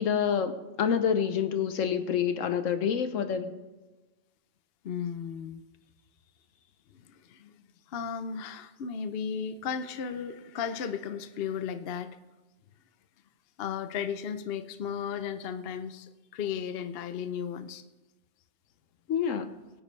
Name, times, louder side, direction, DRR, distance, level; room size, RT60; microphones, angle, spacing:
voice 1, 0.0-3.6 19.1-19.5, left 7 dB, 75° left, 10 dB, 1.2 m, -27 dB
voice 2, 4.8-5.6 6.9-12.1 13.6-17.8, left 7 dB, 55° left, 10 dB, 0.8 m, -35 dB
23.5 x 8.8 x 3.2 m, 1.1 s
omnidirectional pair, 1.3 m